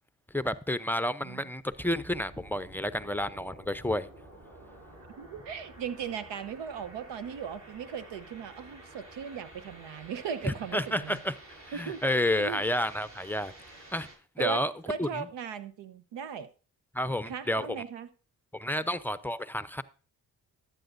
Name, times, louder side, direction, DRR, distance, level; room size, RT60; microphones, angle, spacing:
voice 1, 0.3-4.1 10.5-11.3 11.7-13.5 13.9-14.1 14.4-14.7 15.0-15.1 16.9-17.7 18.5-19.8, left 1 dB, 5° left, 0.6 m, -30 dB
sound 1, 1.7-14.2, right 1 dB, 40° right, 6.4 m, -51 dB
voice 2, 5.2-11.2 11.7-12.6 14.4-16.5 17.2-18.1, right 7 dB, 85° right, 1.0 m, -38 dB
14.0 x 9.7 x 2.6 m
cardioid pair, 70°, 42 cm